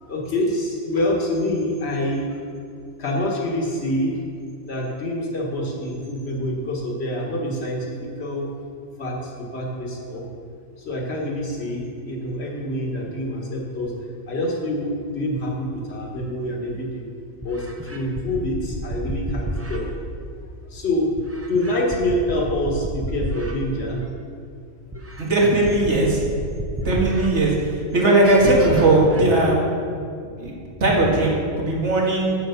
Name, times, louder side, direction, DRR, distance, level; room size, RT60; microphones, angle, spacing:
voice 1, 0.0-2.4 3.0-4.2 4.7-8.5 9.0-10.2 10.8-13.9 14.3-17.1 17.4-19.9 20.7-21.1 21.5-24.0, left 1 dB, 55° left, -1 dB, 1.7 m, -26 dB
sound 1, 16.7-16.8 17.4-19.8 21.2-23.5 24.0-24.1 24.9-27.3 27.8-27.9 28.2-29.2, equal, 15° right, 0.5 m, -31 dB
voice 2, 25.2-26.2 26.8-27.6 27.9-29.6 30.4-30.5 30.8-32.4, right 2 dB, 60° right, -3 dB, 2.0 m, -18 dB
7.8 x 7.8 x 5.8 m, 2.4 s
omnidirectional pair, 1.4 m